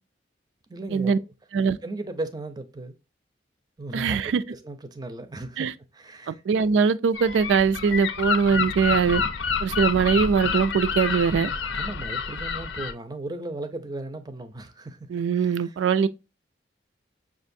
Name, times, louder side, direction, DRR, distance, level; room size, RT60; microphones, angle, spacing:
voice 1, 0.7-1.1 1.8-3.0 3.8-5.7 5.9-6.4 11.7-15.0 15.4-15.7, right 2 dB, 20° right, 0.5 m, -36 dB
voice 2, 3.9-4.4 5.6-5.7 6.3-9.2 9.6-11.5 15.1-16.1, right 6 dB, 85° right, 0.3 m, -22 dB
Gull seagull, 7.1-12.9, left 5 dB, 80° left, 0.6 m, -28 dB
6.2 x 2.5 x 2.6 m
head